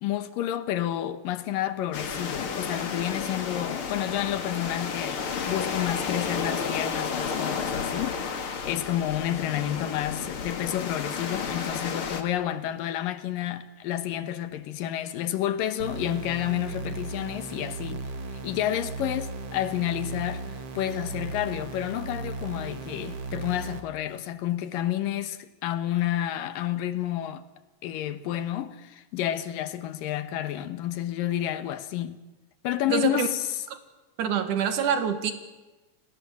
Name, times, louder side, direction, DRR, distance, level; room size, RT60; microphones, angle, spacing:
voice 1, 0.0-18.0 18.4-20.4 20.8-27.4 27.8-32.2 32.6-33.6, left 12 dB, 85° left, 2.9 m, -30 dB
sound 1, 1.9-12.2, left 5 dB, 45° left, 2.5 m, -32 dB
sound 2, 15.8-23.8, right 3 dB, 50° right, 2.6 m, -36 dB
voice 2, 32.9-33.3 34.2-35.3, right 8 dB, 70° right, 3.2 m, -25 dB
29.5 x 19.5 x 7.5 m
omnidirectional pair, 3.8 m